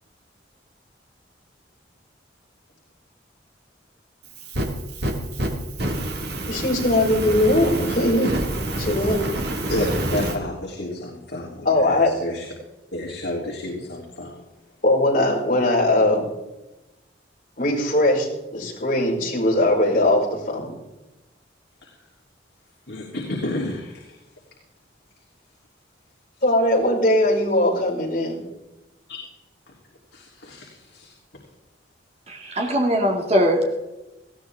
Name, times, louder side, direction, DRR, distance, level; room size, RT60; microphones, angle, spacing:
Fire, 4.2-10.4, right 1 dB, 60° right, 2.2 m, -27 dB
voice 1, 6.5-8.4 8.8-9.2 11.7-12.1 14.8-16.2 17.6-20.7 26.4-28.4, left 1 dB, 45° left, 5.3 m, -20 dB
voice 2, 9.7-12.5 12.9-14.4 21.8-22.0 22.9-24.2 29.1-29.2 30.1-31.1, left 1 dB, 70° left, 3.2 m, -30 dB
voice 3, 32.3-33.8, equal, 35° right, 2.3 m, -21 dB
19.5 x 15.0 x 3.6 m
head